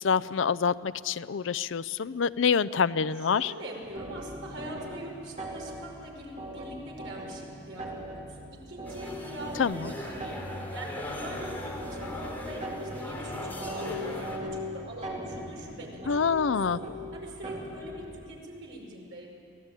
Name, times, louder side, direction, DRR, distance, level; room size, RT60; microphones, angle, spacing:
voice 1, 0.0-3.5 9.6-9.9 16.1-16.8, left 6 dB, 70° left, 18 dB, 0.5 m, -26 dB
voice 2, 3.1-7.9 8.1-10.4 10.7-16.8 17.1-19.3, right 1 dB, 70° right, -1 dB, 5.5 m, -43 dB
sound 1, 4.0-18.1, equal, 35° right, 3.9 m, -40 dB
sound 2, 8.9-14.4, left 1 dB, 10° left, 3.2 m, -39 dB
25.0 x 17.0 x 9.0 m, 2.5 s
head